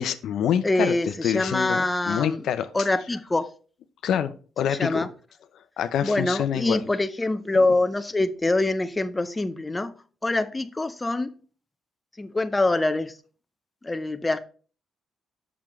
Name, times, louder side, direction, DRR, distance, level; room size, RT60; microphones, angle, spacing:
voice 1, 0.0-1.0 1.2-2.7 4.0-5.0 5.8-6.8, left 9 dB, 75° left, 0.5 m, -26 dB
voice 2, 0.6-2.5 2.7-3.5 4.7-5.1 6.0-9.9 10.2-11.3 12.2-13.2 13.8-14.4, left 2 dB, 15° left, 0.5 m, -24 dB
6.8 x 6.1 x 3.0 m
cardioid pair, 90°, 0 cm